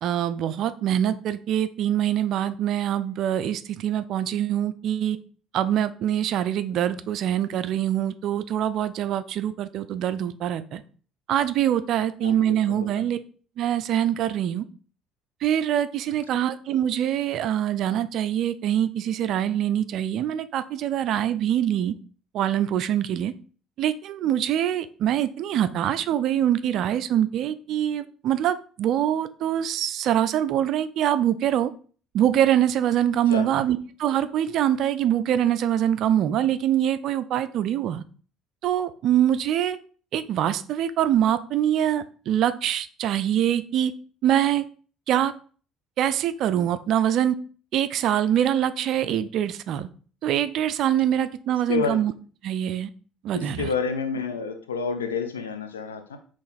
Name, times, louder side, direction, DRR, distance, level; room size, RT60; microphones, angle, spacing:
voice 1, 0.0-5.2 5.5-10.8 11.3-13.2 13.6-14.7 15.4-21.9 22.3-23.3 23.8-31.7 32.1-38.0 38.6-39.8 40.1-43.9 44.2-44.7 45.1-45.3 46.0-47.4 47.7-49.9 50.2-52.1 52.4-52.9 53.2-53.7, right 10 dB, 55° right, 12 dB, 0.3 m, -24 dB
voice 2, 12.2-13.1 33.3-33.5 51.7-52.0 53.3-56.2, left 5 dB, 80° left, 7 dB, 0.6 m, -29 dB
3.9 x 3.0 x 4.0 m, 0.41 s
figure-of-eight pair, 55°, 0 cm